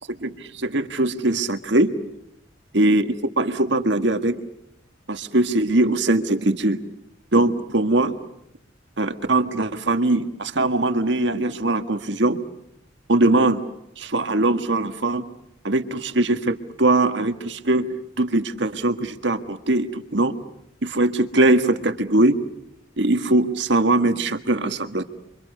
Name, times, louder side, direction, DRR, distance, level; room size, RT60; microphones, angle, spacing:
voice 1, 0.2-1.9 2.7-3.1 3.4-4.4 5.1-6.8 7.3-8.1 9.0-12.4 13.1-13.6 14.0-15.3 15.6-17.9 18.2-20.4 20.8-22.4 23.0-25.0, right 2 dB, 65° right, 7 dB, 1.7 m, -21 dB
29.5 x 25.0 x 6.6 m, 0.82 s
head